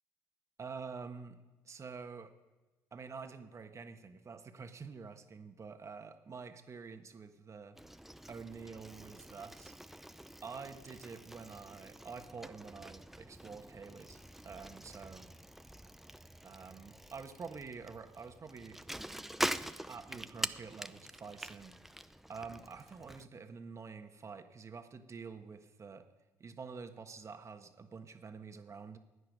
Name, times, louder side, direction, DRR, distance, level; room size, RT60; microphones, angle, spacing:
voice 1, 0.6-1.4 1.6-2.3 2.9-7.7 8.3-9.7 10.4-15.3 16.4-18.8 19.7-21.8 22.3-26.1 26.4-29.0, right 5 dB, 40° right, 7 dB, 1.5 m, -47 dB
Bicycle, 7.7-23.2, right 1 dB, 5° right, 0.6 m, -45 dB
16.0 x 9.7 x 5.4 m, 1.2 s
supercardioid pair, 65°, 8 cm